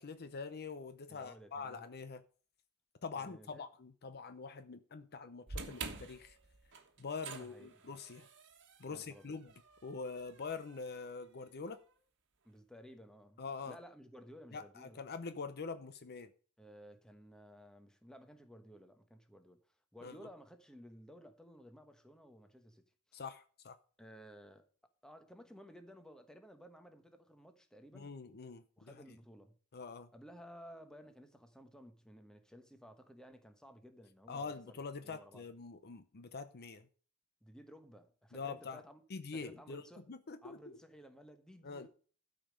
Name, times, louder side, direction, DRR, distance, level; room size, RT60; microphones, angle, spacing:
voice 1, 0.0-2.2 3.0-6.4 7.0-8.3 8.8-9.5 9.8-11.8 13.4-13.8 14.5-16.3 20.0-20.2 23.1-23.8 27.9-28.9 29.7-30.1 34.3-36.9 38.3-38.8 39.1-39.8 40.1-40.8 41.6-41.9, left 4 dB, 45° left, 0.7 m, -44 dB
voice 2, 1.1-1.8 3.1-3.7 7.3-7.9 8.9-9.4 12.4-15.0 16.6-19.6 19.9-23.2 24.0-24.7 25.0-28.2 28.8-29.6 30.1-35.4 37.4-39.0 39.3-40.1 40.4-41.9, equal, 5° left, 1.1 m, -56 dB
sound 1, 5.5-11.7, right 4 dB, 55° right, 1.4 m, -49 dB
12.5 x 5.2 x 6.4 m
head